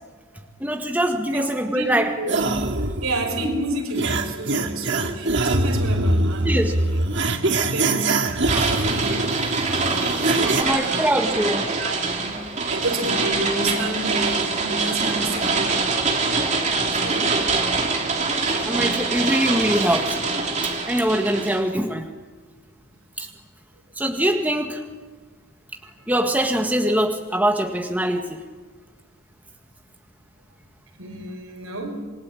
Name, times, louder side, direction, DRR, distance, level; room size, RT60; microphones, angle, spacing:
voice 1, 0.6-2.1 6.4-6.7 10.6-11.7 18.7-20.2 20.9-22.1 23.2-23.3 24.0-24.8 26.1-28.4, right 1 dB, 10° right, 1.8 m, -23 dB
voice 2, 1.3-1.8 2.1-7.0 7.3-9.4 10.2-11.2 11.8-15.8 16.8-17.4 18.0-18.1 26.0-26.1 31.0-32.0, right 2 dB, 85° right, 5.8 m, -30 dB
sound 1, 2.3-10.6, right 2 dB, 55° right, 2.2 m, -23 dB
sound 2, 8.5-21.6, right 3 dB, 35° right, 3.3 m, -24 dB
27.5 x 22.0 x 9.1 m
head